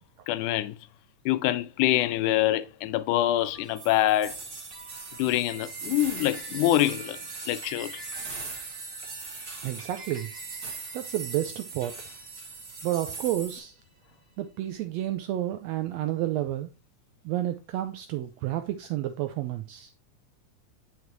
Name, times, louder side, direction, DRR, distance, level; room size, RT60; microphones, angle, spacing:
voice 1, 0.3-0.8 1.3-4.4 5.2-7.2 7.5-8.0, left 14 dB, 85° left, 2.1 m, -25 dB
sound 1, 3.4-14.0, right 2 dB, 50° right, 0.9 m, -49 dB
sound 2, 3.8-13.6, right 4 dB, 35° right, 2.1 m, -40 dB
voice 2, 9.6-10.3 10.9-12.0 12.8-13.8 14.4-16.7 17.2-19.9, right 13 dB, 85° right, 1.5 m, -30 dB
9.4 x 4.9 x 3.0 m
omnidirectional pair, 3.5 m